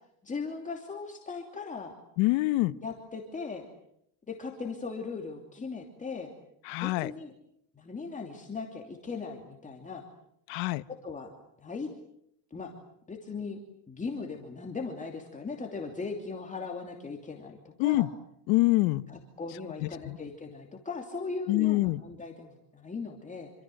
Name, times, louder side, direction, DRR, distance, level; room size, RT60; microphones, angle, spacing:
voice 1, 0.2-1.9 2.8-3.6 4.3-6.3 6.8-7.3 7.7-10.0 10.9-11.3 11.6-11.9 12.5-12.7 13.1-13.6 13.9-18.1 19.1-23.5, left 4 dB, 15° left, 1 dB, 2.9 m, -38 dB
voice 2, 2.2-2.7 6.6-7.1 10.5-10.8 17.8-18.1 18.5-19.1 20.1-20.2 21.5-22.0, left 20 dB, 80° left, 15 dB, 1.2 m, -25 dB
27.5 x 26.0 x 7.9 m, 0.73 s
cardioid pair, 150°, 47 cm